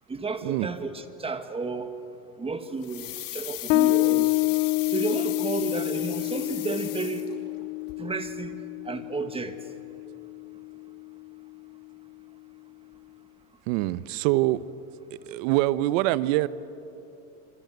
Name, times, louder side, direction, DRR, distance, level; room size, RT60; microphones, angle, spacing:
voice 1, 0.1-1.9 2.4-4.6 4.9-7.3 8.0-8.6 8.8-9.6, right 4 dB, 10° right, 1.5 m, -32 dB
sound 1, 2.8-7.6 7.9-8.0, left 15 dB, 45° left, 2.8 m, -38 dB
Bass guitar, 3.7-10.9, left 23 dB, 70° left, 0.6 m, -28 dB
voice 2, 13.7-14.6 15.1-16.5, right 17 dB, 55° right, 1.0 m, -24 dB
26.5 x 26.5 x 8.0 m
supercardioid pair, 130°, 45 cm